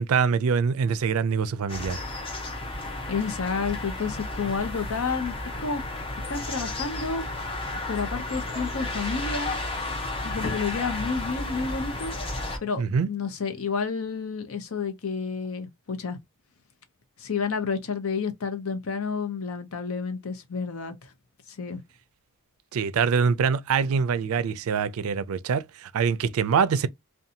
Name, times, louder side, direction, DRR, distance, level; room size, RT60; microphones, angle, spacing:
voice 1, 0.0-2.0 12.8-13.1 22.7-26.9, right 6 dB, 75° right, 0.4 m, -24 dB
sound 1, 1.7-12.6, left 2 dB, 25° left, 0.7 m, -33 dB
voice 2, 3.1-5.8 6.3-7.2 7.9-9.6 10.2-12.1 12.6-16.2 17.2-21.1 21.6-21.8, left 5 dB, 75° left, 0.7 m, -30 dB
2.7 x 2.3 x 2.6 m
head